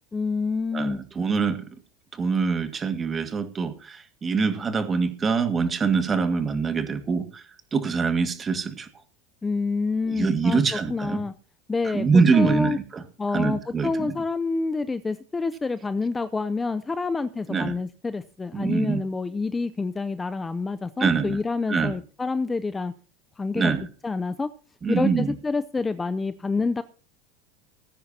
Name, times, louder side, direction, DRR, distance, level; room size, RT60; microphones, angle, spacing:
voice 1, 0.1-1.0 9.4-11.3 11.7-12.1 12.3-12.8 13.2-22.9 23.4-23.7 24.0-24.5 24.9-26.8, left 4 dB, 15° left, 12 dB, 0.6 m, -27 dB
voice 2, 0.7-1.6 2.2-7.4 7.7-8.9 10.1-11.2 11.8-13.0 13.3-14.1 17.5-17.7 18.5-19.0 21.0-21.4 21.7-21.9 23.5-23.8 24.8-25.3, right 5 dB, 20° right, 9 dB, 1.9 m, -24 dB
19.5 x 10.0 x 2.8 m, 0.39 s
supercardioid pair, 140°, 0 cm